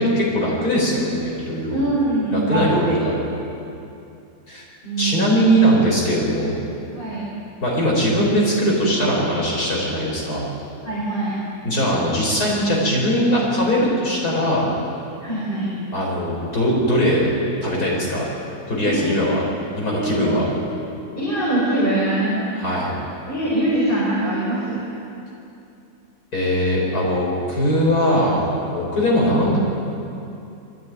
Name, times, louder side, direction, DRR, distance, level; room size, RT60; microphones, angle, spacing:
voice 1, 0.0-1.8 2.3-3.2 4.5-4.6 5.0-6.6 7.6-10.4 11.6-14.7 15.9-17.3 17.6-18.2 18.7-19.4 19.8-20.4 22.6-22.9 26.3-29.6, equal, 75° left, -4 dB, 5.5 m, -20 dB
voice 2, 1.7-2.9 4.8-5.3 6.9-7.3 10.8-11.4 15.2-15.7 18.8-19.1 19.8-20.2 21.2-22.4 23.3-24.9, right 1 dB, 35° left, -8 dB, 5.2 m, -23 dB
22.5 x 14.5 x 9.5 m, 2.7 s
omnidirectional pair, 1.6 m